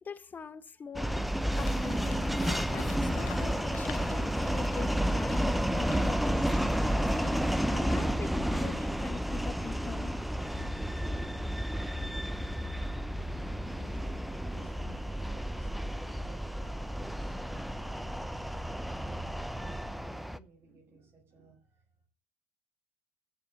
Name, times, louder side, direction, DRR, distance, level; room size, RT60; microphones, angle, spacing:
voice 1, 0.0-1.2 1.6-7.0 7.7-10.1, left 6 dB, 30° left, 1.5 m, -42 dB
sound 1, 1.0-20.4, equal, ahead, 0.8 m, -31 dB
sound 2, 1.5-7.7, left 15 dB, 75° left, 0.9 m, -49 dB
voice 2, 13.7-17.3 17.7-22.1, right 2 dB, 40° right, 5.4 m, -59 dB
14.0 x 6.7 x 8.4 m
hypercardioid pair, 70°, 6 cm